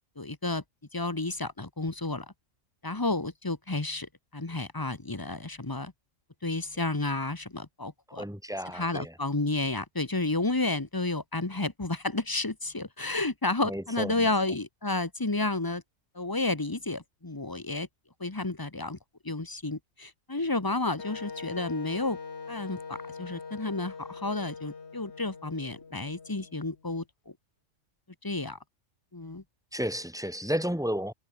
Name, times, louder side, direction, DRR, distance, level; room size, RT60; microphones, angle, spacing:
voice 1, 0.2-0.6 0.9-2.3 2.8-5.9 6.4-8.2 8.7-15.8 16.1-17.9 18.2-19.0 19.2-22.2 22.5-27.3 28.2-28.6 29.1-29.4, left 2 dB, 15° left, 1.3 m, -31 dB
voice 2, 8.1-9.1 13.6-14.3 29.7-31.1, equal, ahead, 5.1 m, -32 dB
Wind instrument woodwind instrument, 21.0-26.8, left 5 dB, 55° left, 2.0 m, -43 dB
omnidirectional pair, 1.3 m